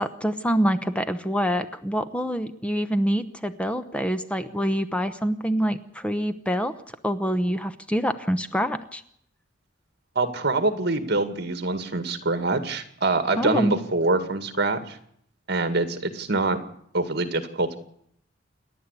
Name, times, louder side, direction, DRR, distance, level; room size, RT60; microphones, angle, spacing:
voice 1, 0.0-6.7 7.0-9.0 13.4-13.7, equal, 5° left, 10 dB, 0.9 m, -26 dB
voice 2, 10.2-15.0 15.5-16.6 16.9-17.8, right 3 dB, 60° right, 9 dB, 2.1 m, -25 dB
28.0 x 11.0 x 8.3 m, 0.69 s
head